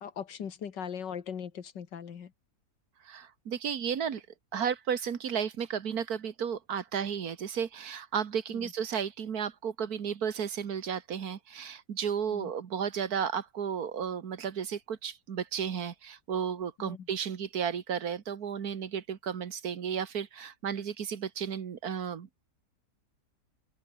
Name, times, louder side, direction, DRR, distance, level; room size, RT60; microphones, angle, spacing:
voice 1, 0.0-2.3 8.5-8.7 12.3-12.5 16.8-17.1, left 7 dB, 85° left, 2.3 m, -40 dB
voice 2, 3.0-4.2 4.5-22.4, right 7 dB, 60° right, 1.8 m, -33 dB
open air
omnidirectional pair, 1.8 m